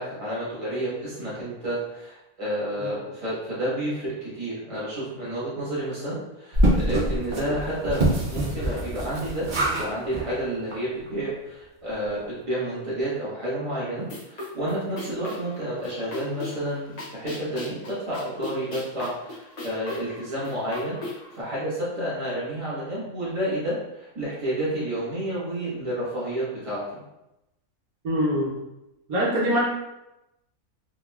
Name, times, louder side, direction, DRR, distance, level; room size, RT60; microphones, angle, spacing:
voice 1, 0.0-27.0, right 1 dB, 25° right, -9 dB, 1.3 m, -30 dB
sound 1, 6.5-9.9 10.1-10.3 10.7-10.8 11.1-11.2, right 1 dB, 45° right, 0.7 m, -24 dB
sound 2, 14.0-21.4, left 2 dB, 45° left, 0.6 m, -39 dB
voice 2, 28.0-28.6 29.1-29.6, equal, 80° right, -4 dB, 1.3 m, -23 dB
3.7 x 2.9 x 2.3 m, 0.93 s
omnidirectional pair, 1.5 m